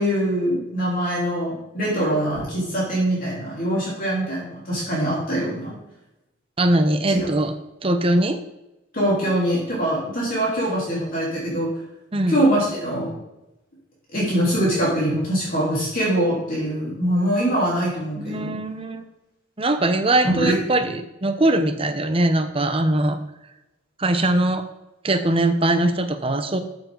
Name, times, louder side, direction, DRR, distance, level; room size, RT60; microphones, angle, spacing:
voice 1, 0.0-5.8 7.1-7.3 8.9-11.7 12.3-13.2 14.1-18.6 20.2-20.6, right 1 dB, 45° left, -6 dB, 3.8 m, -23 dB
voice 2, 6.6-7.5 7.8-8.4 12.1-12.4 18.2-19.0 19.6-23.2 24.0-24.7 25.0-26.6, right 1 dB, 30° right, 8 dB, 0.9 m, -21 dB
13.5 x 7.0 x 4.0 m, 0.94 s
head